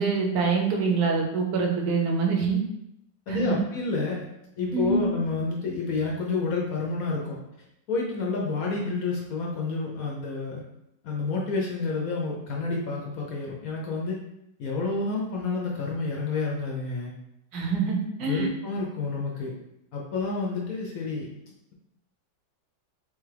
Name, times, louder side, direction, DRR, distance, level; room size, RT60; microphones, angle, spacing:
voice 1, 0.0-2.6 3.3-3.6 4.7-5.1 17.5-18.5, right 4 dB, 65° right, 0 dB, 1.1 m, -25 dB
voice 2, 3.3-4.3 4.6-7.4 7.9-10.6 11.0-14.2 14.6-17.1 18.2-19.5 19.9-21.3, left 3 dB, 65° left, -2 dB, 0.9 m, -29 dB
3.6 x 3.3 x 3.3 m, 0.82 s
omnidirectional pair, 2.0 m